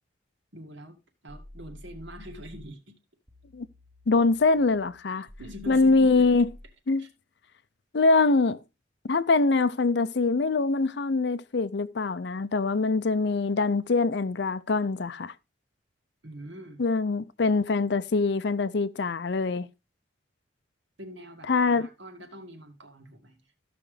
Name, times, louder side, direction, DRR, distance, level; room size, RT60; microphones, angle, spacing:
voice 1, 0.5-1.0 1.2-3.0 5.1-6.3 7.0-7.1 16.2-16.8 21.0-23.5, equal, 70° right, 2.1 m, -44 dB
sound 1, 1.3-2.7 3.3-6.7, left 1 dB, 10° right, 0.9 m, -49 dB
voice 2, 4.1-5.3 5.7-6.5 6.9-7.0 7.9-8.6 9.1-15.3 16.8-19.7 21.5-21.9, left 3 dB, 60° left, 0.5 m, -24 dB
14.5 x 6.0 x 3.3 m
head